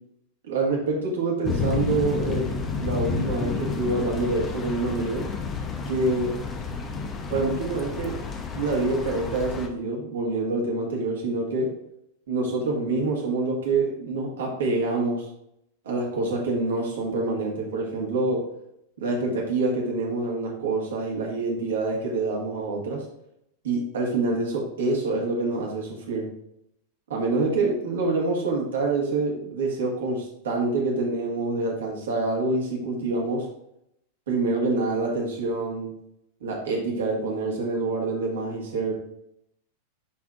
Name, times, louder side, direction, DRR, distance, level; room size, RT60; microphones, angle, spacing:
voice 1, 0.5-2.5 2.8-5.2 5.9-6.4 7.3-8.2 8.5-11.7 12.3-15.3 15.8-18.4 19.0-23.0 23.6-26.3 27.1-33.5 34.3-35.9 36.4-39.0, right 3 dB, 60° right, -1 dB, 1.7 m, -26 dB
sound 1, 1.4-9.7, left 4 dB, 25° left, 0.8 m, -30 dB
10.0 x 3.6 x 2.5 m, 0.78 s
figure-of-eight pair, 90°, 0 cm